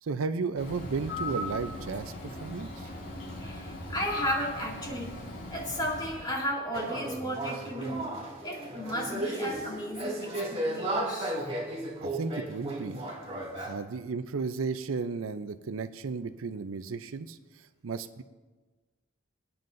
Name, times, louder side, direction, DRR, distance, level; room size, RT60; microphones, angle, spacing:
voice 1, 0.0-2.9 11.3-11.4 12.0-13.0 13.7-18.2, right 4 dB, 85° right, 12 dB, 0.5 m, -34 dB
Bird, 0.6-6.4, left 2 dB, 70° left, 3.9 m, -39 dB
voice 2, 3.4-5.1 5.5-8.1 8.4-11.4 13.6-13.7, equal, 20° left, -3 dB, 2.4 m, -34 dB
sound 1, 6.7-13.7, right 1 dB, 30° right, 2.2 m, -34 dB
24.5 x 9.3 x 2.6 m, 1.3 s
head